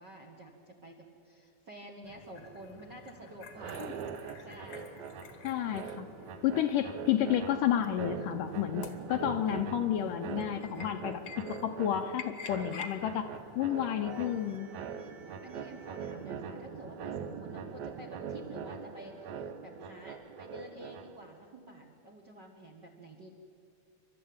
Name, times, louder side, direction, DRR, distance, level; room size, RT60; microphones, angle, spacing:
voice 1, 0.0-3.9 4.4-5.0 8.6-9.0 12.6-12.8 13.6-23.3, right 1 dB, 50° right, 2 dB, 1.3 m, -50 dB
sound 1, 2.0-14.6, left 5 dB, 55° left, 1.6 m, -50 dB
sound 2, 3.5-21.4, right 6 dB, 65° right, 1.9 m, -42 dB
voice 2, 5.4-6.1 6.4-11.2 11.5-13.3 13.6-14.7, left 10 dB, 75° left, 7 dB, 2.1 m, -31 dB
sound 3, 14.1-20.1, right 2 dB, 85° right, 5.2 m, -57 dB
29.0 x 12.5 x 8.7 m, 2.4 s
omnidirectional pair, 4.4 m